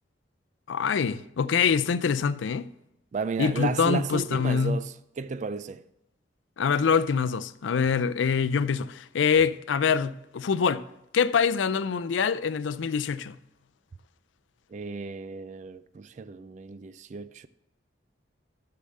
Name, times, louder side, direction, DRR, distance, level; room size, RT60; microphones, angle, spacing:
voice 1, 0.7-2.7 3.4-4.8 6.6-10.8 11.1-13.4, left 6 dB, 80° left, 0.4 m, -25 dB
voice 2, 3.1-5.8 14.7-17.5, right 4 dB, 40° right, 0.3 m, -33 dB
6.7 x 6.7 x 7.4 m
head